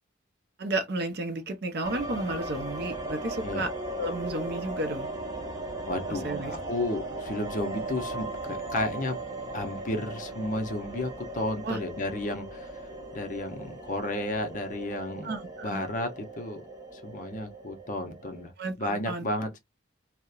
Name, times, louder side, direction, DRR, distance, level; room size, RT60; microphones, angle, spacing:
voice 1, 0.6-3.7 4.0-5.1 6.1-6.5 11.6-11.8 15.2-15.8 18.6-19.2, right 2 dB, 55° right, 0.5 m, -32 dB
sound 1, 1.8-18.5, right 2 dB, 20° right, 0.8 m, -38 dB
voice 2, 5.9-9.2 9.5-12.8 13.1-15.3 15.6-16.6 16.9-18.5 18.8-19.6, left 1 dB, 40° left, 0.6 m, -32 dB
2.8 x 2.0 x 2.3 m
head